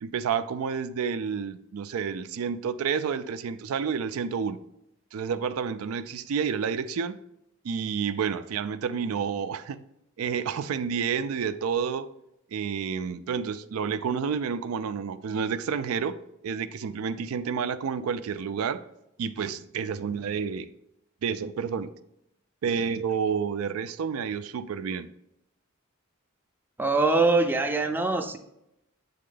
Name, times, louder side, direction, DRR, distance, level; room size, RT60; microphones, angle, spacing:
voice 1, 0.0-4.6 5.1-7.2 7.6-9.8 10.2-12.1 12.5-16.2 16.4-18.8 19.2-20.7 21.2-21.9 22.6-25.1, right 6 dB, 90° right, 0.4 m, -29 dB
voice 2, 26.8-28.4, right 3 dB, 10° right, 0.4 m, -23 dB
7.6 x 3.6 x 3.8 m
head